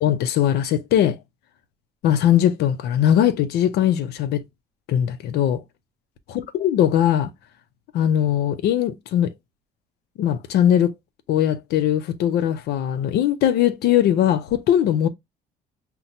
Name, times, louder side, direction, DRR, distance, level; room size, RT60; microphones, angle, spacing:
voice 1, 0.0-1.2 2.0-4.4 4.9-5.6 6.3-7.3 7.9-9.3 10.2-10.9 11.3-15.1, left 10 dB, 75° left, 0.6 m, -20 dB
5.7 x 2.2 x 2.6 m
cardioid pair, 110°, 17 cm